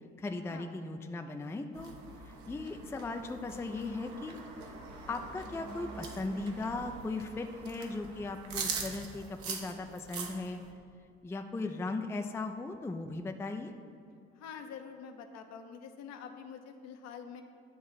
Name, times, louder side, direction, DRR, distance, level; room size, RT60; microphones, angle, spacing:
voice 1, 0.2-1.9 2.2-4.4 4.6-4.8 5.1-10.6 11.2-13.7, left 3 dB, 10° left, 5 dB, 0.4 m, -38 dB
sound 1, 1.7-10.7, right 5 dB, 60° right, 1.1 m, -43 dB
voice 2, 14.3-17.4, left 7 dB, 55° left, 6 dB, 0.8 m, -46 dB
9.5 x 3.6 x 6.2 m, 2.4 s
figure-of-eight pair, 50°, 33 cm